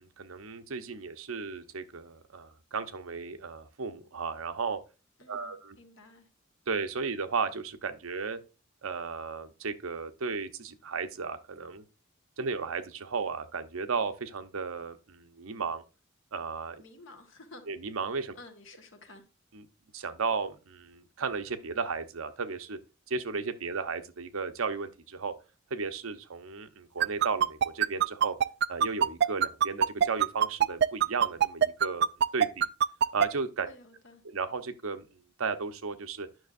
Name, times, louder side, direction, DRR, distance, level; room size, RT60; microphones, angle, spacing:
voice 1, 0.0-4.8 5.3-5.8 6.7-8.4 8.8-11.8 12.4-15.8 16.3-16.8 17.7-18.3 19.5-19.7 19.9-22.8 23.1-25.3 25.7-28.4 28.7-32.1 32.3-32.7 33.1-33.7 34.2-35.1 35.4-36.3, right 4 dB, 85° right, 0.8 m, -34 dB
voice 2, 5.2-6.3 16.8-17.6 18.3-19.2 33.7-34.2, left 2 dB, 65° left, 1.4 m, -52 dB
sound 1, 27.0-33.3, right 8 dB, 50° right, 0.3 m, -22 dB
9.3 x 6.1 x 2.5 m
head